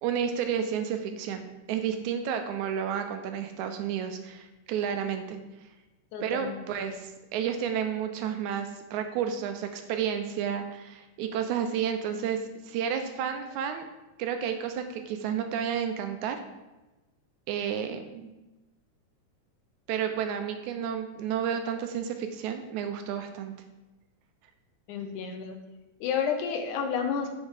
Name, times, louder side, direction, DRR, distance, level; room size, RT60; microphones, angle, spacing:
voice 1, 0.0-5.4 6.2-13.9 14.2-16.4 17.5-18.3 19.9-23.5, right 8 dB, 80° right, 7 dB, 1.8 m, -31 dB
voice 2, 6.1-6.6 24.9-25.6 26.0-27.3, left 6 dB, 85° left, 5 dB, 2.2 m, -30 dB
5.9 x 4.3 x 4.8 m, 1.1 s
omnidirectional pair, 3.5 m